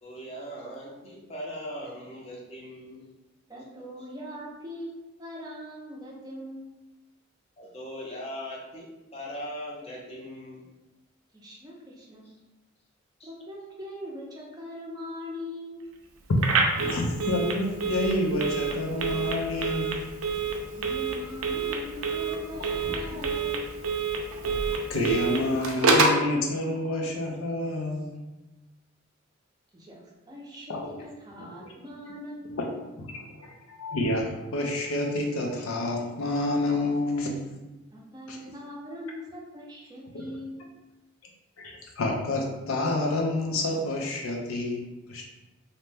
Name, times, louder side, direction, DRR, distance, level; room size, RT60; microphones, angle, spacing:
voice 1, 0.0-3.1 3.7-3.8 7.6-10.6 13.2-13.3 24.9-25.2 25.5-25.6, equal, 30° left, -4 dB, 0.6 m, -40 dB
voice 2, 3.5-6.8 11.3-12.3 13.2-15.9 20.7-23.6 29.7-30.0 30.3-32.9 37.9-40.6, left 1 dB, 20° right, -3 dB, 0.5 m, -41 dB
Telephone, 16.4-26.3, right 4 dB, 85° right, 0.5 m, -28 dB
voice 3, 16.6-20.0 23.1-23.2 24.4-24.6 24.9-28.2 30.7-31.0 31.4-31.7 33.0-37.4 38.3-38.4 40.1-40.2 41.6-45.3, left 2 dB, 90° left, 0 dB, 0.6 m, -29 dB
2.7 x 2.1 x 3.2 m, 1.1 s
head